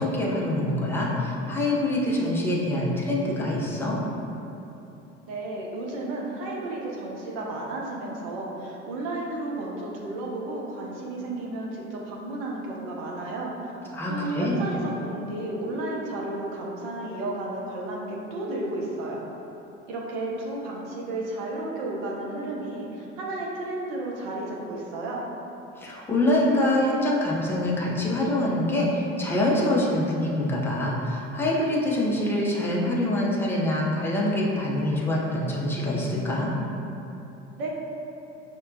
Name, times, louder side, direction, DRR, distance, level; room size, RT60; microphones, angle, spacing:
voice 1, 0.0-4.0 13.9-14.6 25.8-36.5, left 1 dB, 5° left, -5 dB, 0.5 m, -25 dB
voice 2, 5.3-13.7 14.1-19.2 19.9-25.2 37.6-37.7, right 2 dB, 50° right, -2 dB, 0.7 m, -33 dB
5.2 x 2.1 x 2.5 m, 2.9 s
figure-of-eight pair, 65°, 37 cm